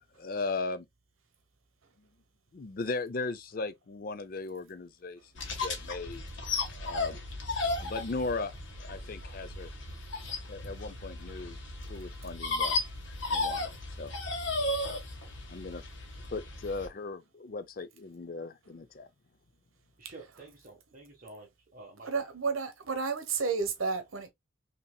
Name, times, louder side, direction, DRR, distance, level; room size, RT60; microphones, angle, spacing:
voice 1, 0.2-0.9 2.5-6.2 6.7-7.2 7.8-8.5 8.8-9.7 10.5-11.6 11.9-12.8 13.3-14.1 15.5-15.8 16.3-19.1, left 3 dB, 40° left, 0.4 m, -37 dB
sound 1, 5.4-16.9, left 2 dB, 60° left, 1.3 m, -35 dB
voice 2, 20.0-22.1, right 2 dB, 40° right, 1.2 m, -50 dB
voice 3, 22.0-24.3, right 4 dB, 75° right, 1.0 m, -31 dB
5.5 x 2.9 x 2.2 m
head